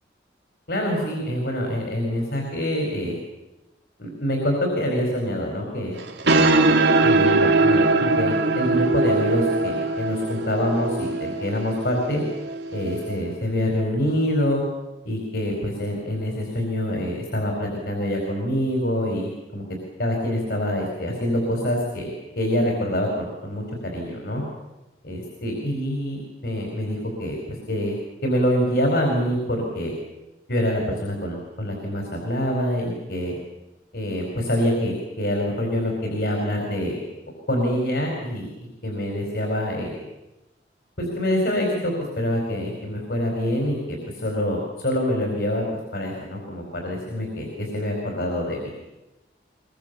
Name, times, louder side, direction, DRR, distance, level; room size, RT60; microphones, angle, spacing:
voice 1, 0.7-3.2 4.0-6.0 6.2-6.7 7.0-12.2 12.7-14.6 15.0-19.6 20.0-24.4 25.0-27.4 27.7-29.9 30.5-33.3 33.9-37.0 37.5-40.0 41.0-44.0 44.2-45.6 45.9-48.7, equal, 70° left, 1 dB, 4.9 m, -26 dB
sound 1, 6.0-13.1, right 2 dB, 85° right, 2.6 m, -21 dB
23.5 x 23.0 x 7.0 m, 1.0 s
head